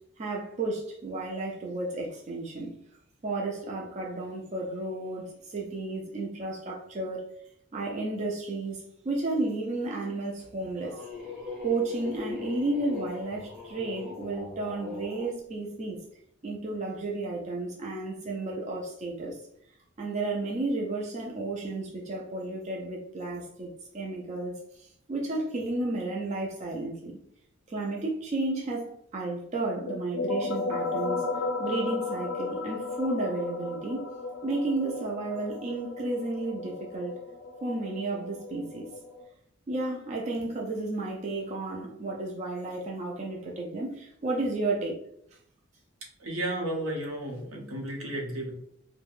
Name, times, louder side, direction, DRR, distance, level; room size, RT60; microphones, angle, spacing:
voice 1, 0.2-2.8 3.2-7.3 7.7-11.0 11.6-16.0 16.4-19.4 20.0-27.2 27.7-31.2 31.6-34.1 34.4-37.2 37.6-38.9 39.7-45.0, right 2 dB, 35° right, -2 dB, 0.3 m, -32 dB
sound 1, 10.4-15.3, left 4 dB, ahead, 0.7 m, -40 dB
sound 2, 29.9-39.2, left 3 dB, 75° left, 0.4 m, -34 dB
voice 2, 46.2-48.5, right 1 dB, 80° right, -1 dB, 0.8 m, -33 dB
3.2 x 2.1 x 2.4 m, 0.69 s
head